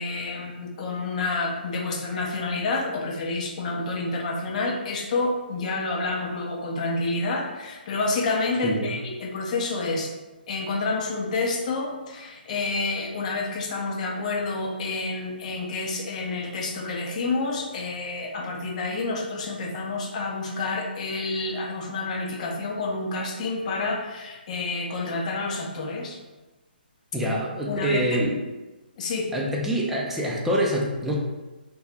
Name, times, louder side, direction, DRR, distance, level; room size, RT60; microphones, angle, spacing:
voice 1, 0.0-10.1 10.5-26.2 27.2-27.3 27.7-28.2 29.0-29.3, left 3 dB, 45° left, 0 dB, 0.6 m, -29 dB
voice 2, 8.6-9.0 27.1-28.4 29.3-31.2, right 1 dB, 5° right, -3 dB, 0.3 m, -25 dB
2.8 x 2.2 x 3.2 m, 1.1 s
hypercardioid pair, 145°, 6 cm